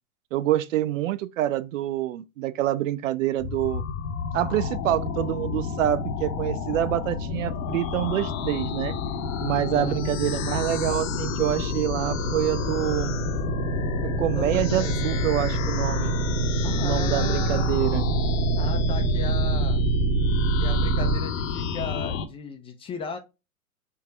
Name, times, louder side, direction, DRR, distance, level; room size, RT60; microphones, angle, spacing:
voice 1, 0.3-3.8 4.3-9.0 9.4-13.1 14.2-16.1 16.8-18.1, right 13 dB, 60° right, 0.5 m, -26 dB
sound 1, 3.4-22.2, left 7 dB, 60° left, 0.8 m, -30 dB
sound 2, 7.9-21.2, right 5 dB, 40° right, 0.9 m, -26 dB
voice 2, 9.7-10.1 14.3-15.2 16.6-17.8 18.6-19.8 20.6-23.2, left 4 dB, 15° left, 0.4 m, -36 dB
4.6 x 2.3 x 4.1 m
figure-of-eight pair, 95°, 43 cm